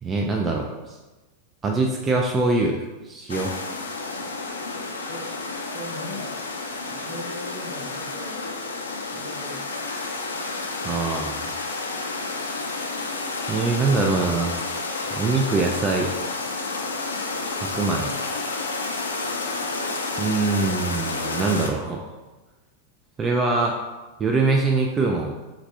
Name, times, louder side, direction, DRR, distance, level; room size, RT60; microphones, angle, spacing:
voice 1, 0.0-1.0 1.6-3.5 10.8-11.4 13.5-14.6 15.1-16.1 17.6-18.1 20.2-22.1 23.2-23.8 24.2-25.3, right 3 dB, 20° right, 1 dB, 0.3 m, -23 dB
sound 1, 3.3-21.7, left 3 dB, 70° left, 0.3 m, -30 dB
voice 2, 5.7-6.3 6.9-8.5 9.0-9.6, equal, 70° right, -5 dB, 1.0 m, -38 dB
3.3 x 2.4 x 3.3 m, 1.1 s
figure-of-eight pair, 90°, 0 cm